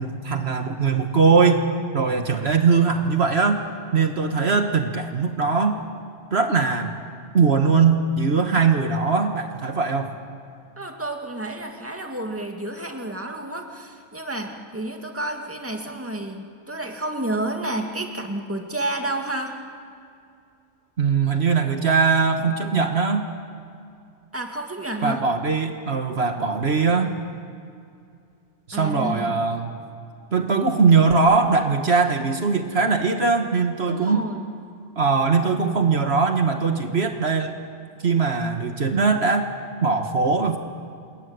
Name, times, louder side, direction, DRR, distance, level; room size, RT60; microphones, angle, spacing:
voice 1, 0.0-1.6 1.9-3.6 3.9-5.8 6.3-6.9 7.3-10.2 21.0-23.3 25.0-27.1 28.7-29.8 30.3-34.2 35.0-37.5 38.0-39.5 39.8-40.6, right 5 dB, 60° right, 5 dB, 1.7 m, -20 dB
voice 2, 10.8-19.6 24.3-25.3 28.7-29.4 33.9-34.5, right 1 dB, 10° right, 3 dB, 2.2 m, -30 dB
28.0 x 21.0 x 9.6 m, 2.4 s
omnidirectional pair, 1.2 m